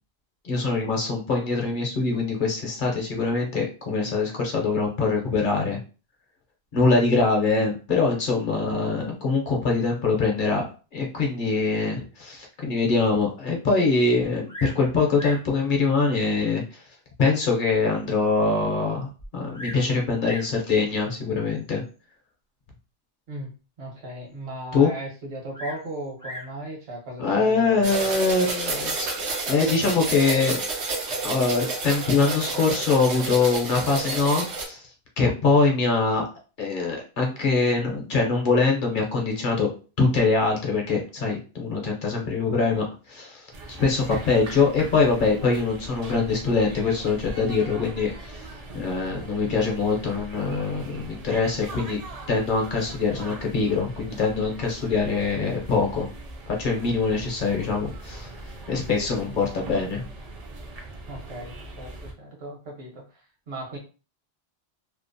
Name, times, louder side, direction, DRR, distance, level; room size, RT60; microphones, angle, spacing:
voice 1, 0.4-5.8 6.7-10.6 10.9-16.8 17.2-21.8 24.7-24.9 27.2-29.1 29.5-30.6 31.2-34.8 35.2-36.2 36.6-39.7 40.0-48.5 48.7-52.0 52.3-56.1 56.6-58.3 58.7-60.0, left 4 dB, 55° left, 0 dB, 0.8 m, -23 dB
Bird vocalization bird call bird song, 14.5-14.8 15.1-15.5 16.4-16.5 17.1-17.2 17.7-17.8 18.0-18.1 19.2-19.9 20.2-20.6 21.5-21.9 25.5-26.6 27.6-28.1, equal, 25° left, 0.4 m, -39 dB
voice 2, 23.8-27.9 59.3-59.4 61.1-63.8, right 1 dB, 65° right, -1 dB, 1.2 m, -37 dB
sound 1, 27.8-34.6, right 3 dB, 85° right, 1.0 m, -30 dB
sound 2, 43.5-62.1, right 2 dB, 50° right, 0.5 m, -41 dB
2.7 x 2.0 x 2.5 m, 0.35 s
omnidirectional pair, 1.1 m